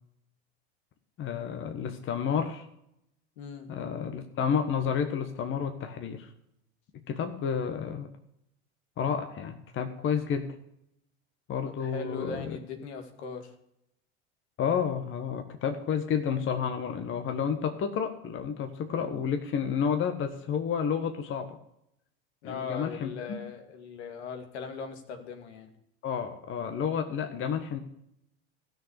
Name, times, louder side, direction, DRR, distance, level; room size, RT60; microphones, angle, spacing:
voice 1, 1.2-2.6 3.7-6.3 7.1-8.1 9.0-10.6 11.5-12.6 14.6-21.6 22.4-23.4 26.0-27.8, left 7 dB, 40° left, 6 dB, 1.4 m, -30 dB
voice 2, 3.4-3.7 11.7-13.5 22.4-25.7 27.1-27.2, left 5 dB, 80° left, 6 dB, 2.5 m, -39 dB
14.5 x 6.7 x 8.1 m, 0.78 s
supercardioid pair, 105°, 32 cm